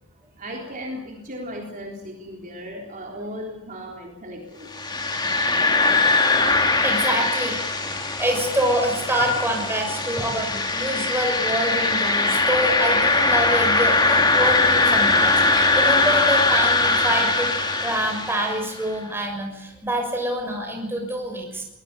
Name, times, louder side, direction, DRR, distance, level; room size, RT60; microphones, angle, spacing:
voice 1, 0.4-4.7 10.5-10.6 12.6-12.7, equal, 40° right, -1 dB, 3.7 m, -36 dB
sound 1, 4.7-18.7, left 3 dB, 20° left, 2.8 m, -21 dB
voice 2, 6.8-7.6 7.9-17.5 17.8-21.6, right 1 dB, 10° right, 2 dB, 6.4 m, -26 dB
23.0 x 20.5 x 6.9 m, 0.90 s
head